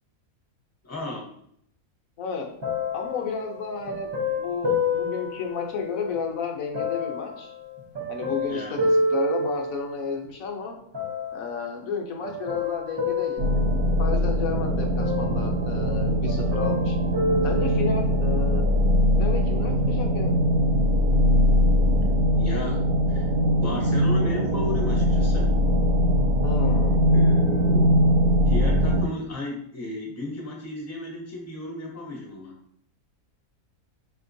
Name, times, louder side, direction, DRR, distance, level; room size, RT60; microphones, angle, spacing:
voice 1, 0.8-1.3 8.5-8.8 22.4-22.8 23.1-23.3 23.5-25.5 27.1-28.0 28.5-32.6, left 2 dB, 15° left, -1 dB, 0.7 m, -34 dB
sound 1, 2.6-6.2 6.7-10.2 10.9-11.6 12.2-14.5 15.0-16.0 16.3-18.3 19.0-19.1, left 2 dB, 35° right, 0.4 m, -29 dB
voice 2, 2.9-7.5 8.1-10.8 11.3-13.6 14.0-17.0 17.4-18.7 19.1-20.4 26.4-27.0, left 5 dB, 70° left, 2 dB, 1.1 m, -32 dB
sound 2, 13.4-29.1, equal, 90° right, 1.1 m, -21 dB
5.2 x 2.9 x 2.6 m, 0.69 s
omnidirectional pair, 1.5 m